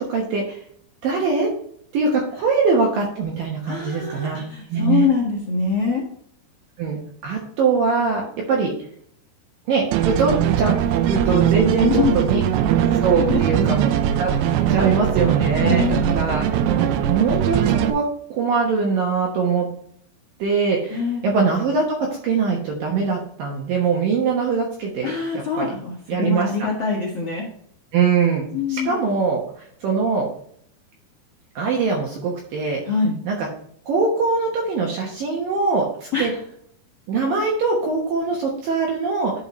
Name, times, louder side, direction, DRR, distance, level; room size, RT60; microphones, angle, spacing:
voice 1, 0.1-0.6 1.0-1.5 1.9-4.4 4.7-5.1 6.8-8.2 8.5-8.7 9.7-10.7 11.1-12.4 13.0-13.9 14.2-14.3 14.7-16.5 17.1-18.0 18.3-19.7 20.4-21.8 22.2-25.7 26.1-26.5 27.9-29.4 29.8-30.3 31.6-32.8 33.3-33.5 33.9-36.3 37.1-39.3, right 4 dB, 70° right, -1 dB, 2.2 m, -22 dB
voice 2, 3.7-6.0 11.8-12.2 13.3-13.6 15.6-16.1 20.9-21.3 25.0-27.5 28.5-28.9 32.8-33.1 36.1-36.4, left 5 dB, 65° left, -3 dB, 1.5 m, -24 dB
sound 1, 9.9-17.9, right 10 dB, 85° right, 2.3 m, -20 dB
11.0 x 5.6 x 3.1 m, 0.64 s
omnidirectional pair, 5.4 m